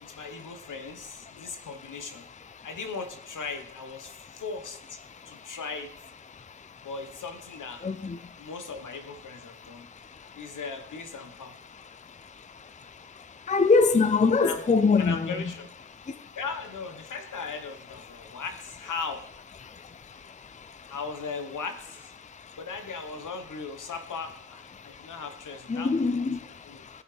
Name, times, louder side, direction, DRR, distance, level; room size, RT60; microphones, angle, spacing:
voice 1, 0.0-2.3 2.6-5.0 5.3-5.9 6.8-7.9 8.4-9.9 10.3-11.6 14.4-14.6 15.0-15.6 16.3-19.3 20.9-22.1 22.6-26.0 26.5-26.8, left 4 dB, 65° left, 1.4 m, -38 dB
voice 2, 13.5-15.4 25.7-26.4, left 4 dB, 20° left, 0.6 m, -22 dB
15.5 x 6.0 x 3.4 m
supercardioid pair, 40°, 33 cm